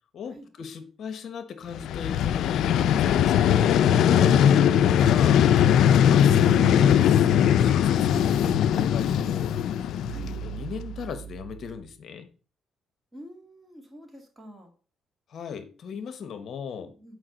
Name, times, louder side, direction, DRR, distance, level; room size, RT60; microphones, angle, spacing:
voice 1, 0.1-3.8 4.9-5.4 5.8-9.5 10.4-12.3 15.3-16.9, left 7 dB, 60° left, 10 dB, 0.8 m, -37 dB
Vehicle, 1.7-10.7, left 9 dB, 80° left, 0.3 m, -20 dB
sound 1, 4.0-11.9, right 8 dB, 65° right, 0.4 m, -38 dB
voice 2, 4.7-5.2 10.1-10.3 13.1-14.7 16.8-17.2, equal, 20° right, 2 dB, 2.0 m, -47 dB
7.6 x 4.9 x 3.8 m, 0.37 s
cardioid pair, 90°, 0 cm